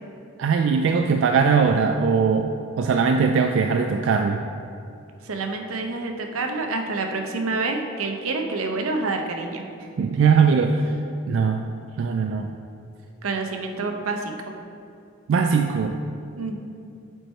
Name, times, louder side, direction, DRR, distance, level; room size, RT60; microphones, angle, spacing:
voice 1, 0.4-4.4 10.0-10.8 11.3-11.6 12.0-12.5 15.3-16.0, right 5 dB, 65° right, 5 dB, 0.3 m, -20 dB
voice 2, 5.2-9.6 13.2-14.6 16.4-16.6, right 3 dB, 90° right, 3 dB, 0.8 m, -28 dB
7.8 x 4.6 x 4.4 m, 2.5 s
head